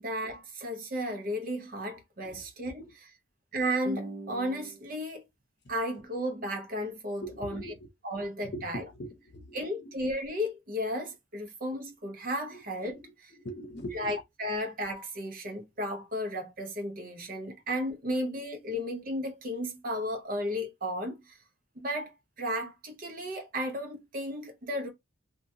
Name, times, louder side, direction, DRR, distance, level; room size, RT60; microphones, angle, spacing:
voice 1, 0.0-3.1 3.5-5.2 5.7-7.7 8.0-8.8 9.5-13.3 13.9-21.4 21.8-24.9, equal, 45° right, 0.6 m, -34 dB
voice 2, 7.2-7.9 8.4-10.0 12.5-12.6 12.9-14.2, equal, 55° left, 0.7 m, -42 dB
2.8 x 2.2 x 2.6 m
head